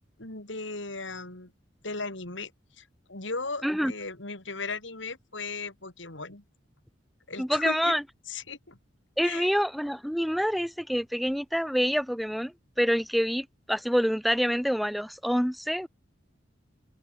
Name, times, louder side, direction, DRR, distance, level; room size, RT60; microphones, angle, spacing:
voice 1, 0.2-1.5 1.8-2.5 2.8-6.4 7.3-7.9 8.3-8.8 9.2-9.5, left 3 dB, 75° left, 4.5 m, -37 dB
voice 2, 7.4-8.0 9.2-15.9, equal, ahead, 6.0 m, -27 dB
open air
head